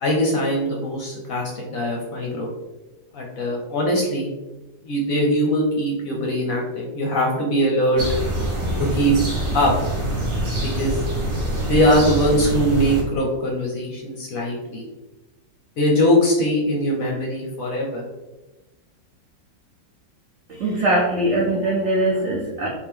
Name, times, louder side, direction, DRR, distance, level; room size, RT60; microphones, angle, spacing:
voice 1, 0.0-2.5 3.1-4.3 4.8-8.0 8.8-9.1 9.5-9.7 10.6-11.0 11.7-14.8 15.8-18.0, equal, 65° left, -1 dB, 0.9 m, -21 dB
sound 1, 8.0-13.0, right 1 dB, 45° right, 1.1 m, -25 dB
voice 2, 20.5-22.7, right 1 dB, 85° right, -2 dB, 0.6 m, -21 dB
3.6 x 2.6 x 3.5 m, 1.1 s
omnidirectional pair, 2.0 m